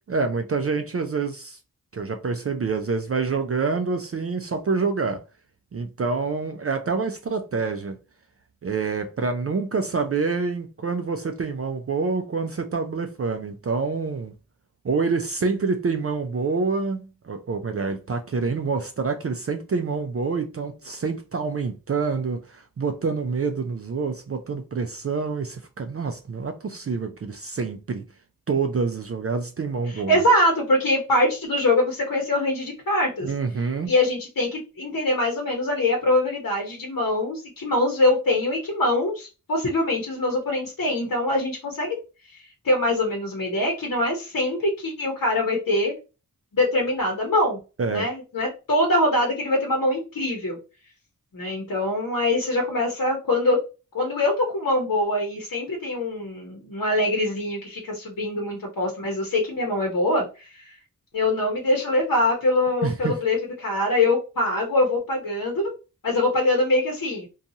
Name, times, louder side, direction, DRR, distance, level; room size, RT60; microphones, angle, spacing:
voice 1, 0.1-1.6 1.9-5.2 5.7-8.0 8.6-14.3 14.8-28.0 28.5-30.2 33.2-33.9 47.8-48.1 62.8-63.2, right 4 dB, 40° right, 0.4 m, -27 dB
voice 2, 29.9-33.3 33.9-42.0 42.3-45.9 46.5-47.6 47.9-50.6 51.3-53.6 53.9-60.8 61.1-65.7 66.0-67.3, left 1 dB, 65° left, 0.9 m, -23 dB
2.6 x 2.3 x 2.6 m
wide cardioid pair, 50°, 35 cm